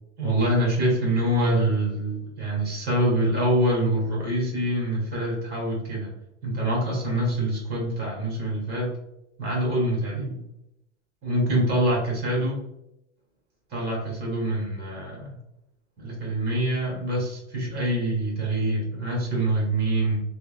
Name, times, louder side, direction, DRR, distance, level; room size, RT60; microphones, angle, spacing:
voice 1, 0.2-6.1 6.4-8.9 9.4-10.4 11.2-12.6 13.7-15.4 16.0-20.2, right 1 dB, 25° right, -2 dB, 1.1 m, -25 dB
3.2 x 2.1 x 2.4 m, 0.87 s
supercardioid pair, 130°, 35 cm